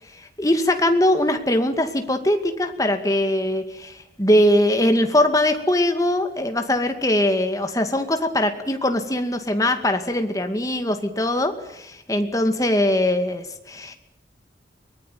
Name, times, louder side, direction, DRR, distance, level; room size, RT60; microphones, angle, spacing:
voice 1, 0.4-14.0, left 1 dB, 20° left, 6 dB, 2.3 m, -21 dB
24.0 x 19.5 x 9.4 m, 0.84 s
head